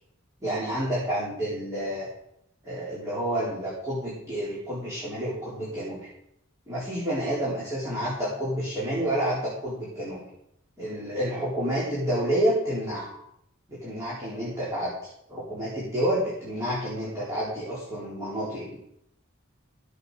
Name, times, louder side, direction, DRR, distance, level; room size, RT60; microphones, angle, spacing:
voice 1, 0.4-2.1 2.6-6.1 6.7-10.2 10.8-13.1 13.7-14.9 15.3-18.8, right 1 dB, 15° right, -9 dB, 3.9 m, -29 dB
15.0 x 8.0 x 4.9 m, 0.78 s
head